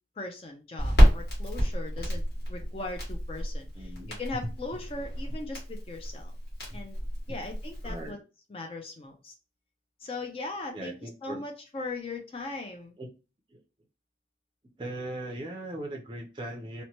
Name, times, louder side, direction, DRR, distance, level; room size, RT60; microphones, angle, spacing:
voice 1, 0.2-2.2 2.5-3.9 4.2-6.3 6.7-7.0 7.3-8.2 8.5-9.3 10.0-11.0 11.2-13.0, left 3 dB, 30° left, 3 dB, 0.4 m, -39 dB
Crackle, 0.8-8.1, equal, 60° left, 1.5 m, -28 dB
voice 2, 3.8-4.2 5.3-5.4 6.7-6.8 7.3-7.4 7.8-8.2 10.7-11.4 13.0-13.1 13.5-13.6 14.8-16.8, right 1 dB, 25° right, 1 dB, 0.5 m, -39 dB
2.9 x 2.1 x 2.8 m, 0.31 s
head